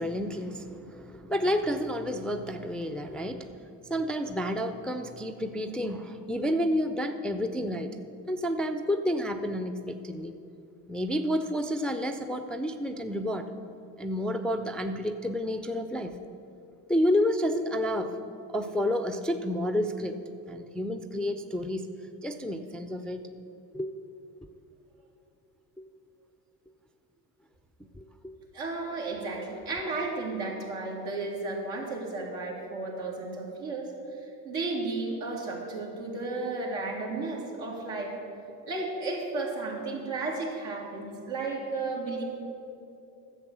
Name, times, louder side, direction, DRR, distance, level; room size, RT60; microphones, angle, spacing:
voice 1, 0.0-7.9 8.3-10.3 10.9-13.5 14.0-16.2 16.9-18.1 18.5-20.2 20.5-21.9 22.2-23.3 23.7-23.9 25.8-25.9 27.8-28.3, equal, ahead, 7 dB, 0.5 m, -30 dB
voice 2, 28.5-33.9 34.4-38.1 38.7-42.2, right 3 dB, 75° right, -2 dB, 2.6 m, -33 dB
11.0 x 7.3 x 6.2 m, 2.8 s
hypercardioid pair, 65°, 49 cm